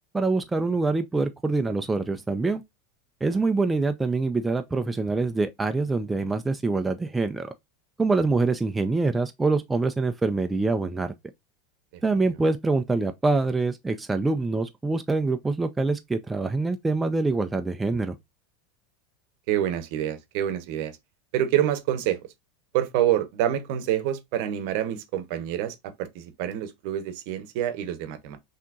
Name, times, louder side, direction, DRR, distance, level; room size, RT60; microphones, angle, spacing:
voice 1, 0.1-2.6 3.2-7.5 8.0-11.1 12.0-18.2, right 3 dB, 10° right, 0.3 m, -25 dB
voice 2, 19.5-20.9 21.3-22.2 22.7-28.4, right 11 dB, 60° right, 0.8 m, -27 dB
5.8 x 2.8 x 2.4 m
supercardioid pair, 145°, 0 cm